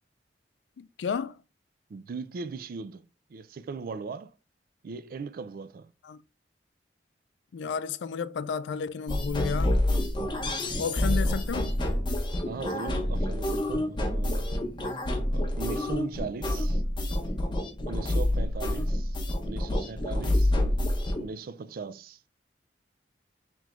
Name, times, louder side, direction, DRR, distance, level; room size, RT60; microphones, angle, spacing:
voice 1, 0.8-1.4 6.0-6.2 7.5-9.8 10.8-11.7 20.5-20.7, left 6 dB, 85° left, 0.3 m, -32 dB
voice 2, 1.9-3.0 3.3-4.3 4.8-5.9 10.6-11.3 12.4-14.5 15.3-16.8 17.9-19.2 19.4-20.5 21.2-22.2, right 4 dB, 55° right, 0.4 m, -39 dB
sound 1, 9.1-21.2, left 1 dB, 25° left, 0.8 m, -28 dB
3.4 x 3.1 x 3.6 m
head